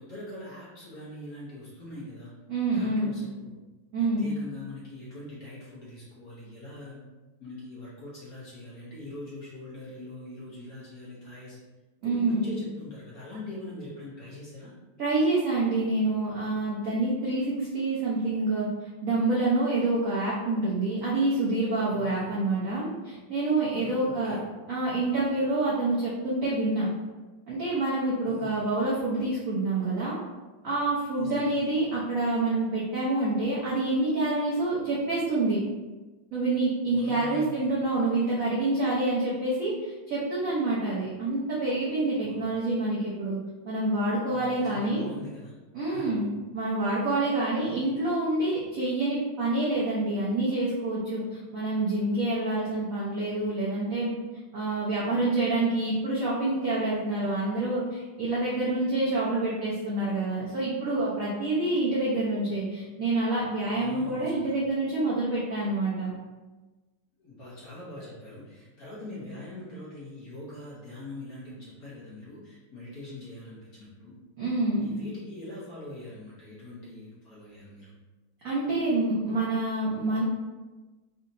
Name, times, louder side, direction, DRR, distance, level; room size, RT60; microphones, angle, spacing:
voice 1, 0.0-2.3 2.7-3.3 4.2-7.0 7.4-11.6 12.0-14.7 21.9-22.2 23.8-24.4 28.3-28.5 31.2-31.5 36.9-37.6 44.3-45.5 45.8-46.2 63.7-64.5 67.2-74.1 74.8-77.8, left 1 dB, 60° left, -8 dB, 1.0 m, -42 dB
voice 2, 2.5-3.2 3.9-4.3 12.0-12.5 15.0-24.4 24.7-26.9 27.5-30.2 30.6-35.6 36.3-43.4 43.6-45.1 45.7-54.1 54.5-66.1 74.4-74.9 78.4-80.2, right 2 dB, 75° right, -7 dB, 0.7 m, -27 dB
4.1 x 2.7 x 2.5 m, 1.2 s
omnidirectional pair, 2.4 m